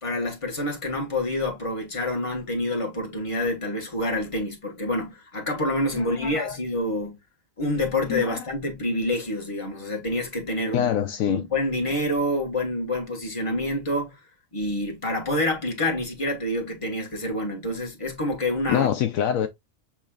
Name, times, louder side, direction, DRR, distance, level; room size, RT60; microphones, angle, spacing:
voice 1, 0.0-7.2 7.6-10.9 11.3-14.1 14.5-18.9, left 1 dB, 25° left, 1.5 m, -27 dB
voice 2, 5.9-6.6 8.1-8.5 10.7-11.4 18.7-19.5, left 10 dB, 75° left, 1.0 m, -25 dB
7.2 x 3.1 x 2.3 m
omnidirectional pair, 1.5 m